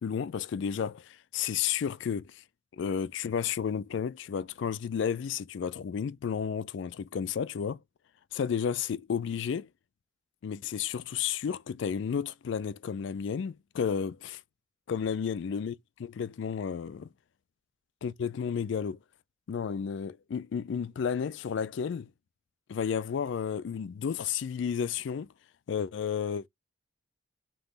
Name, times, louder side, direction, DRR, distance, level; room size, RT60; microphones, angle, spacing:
voice 1, 0.0-2.4 2.7-7.8 8.3-9.7 10.4-14.4 14.9-15.7 16.0-17.1 18.0-19.0 19.5-22.1 22.7-25.3 25.7-26.5, left 7 dB, 60° left, 0.3 m, -32 dB
3.6 x 2.9 x 3.9 m
head